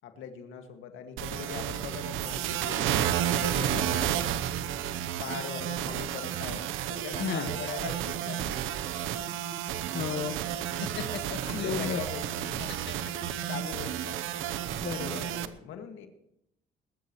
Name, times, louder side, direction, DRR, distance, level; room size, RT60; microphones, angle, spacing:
voice 1, 0.0-2.9 3.3-4.2 5.2-8.8 11.3-12.7 13.5-14.2 15.1-16.1, left 7 dB, 85° left, 5 dB, 2.0 m, -41 dB
sound 1, 1.2-15.5, right 10 dB, 90° right, 0.9 m, -31 dB
voice 2, 7.2-7.5 9.9-10.4 10.8-11.2 11.5-12.0 14.8-15.2, left 7 dB, 65° left, 5 dB, 1.5 m, -33 dB
21.0 x 13.0 x 3.1 m, 0.79 s
cardioid pair, 90°, 20 cm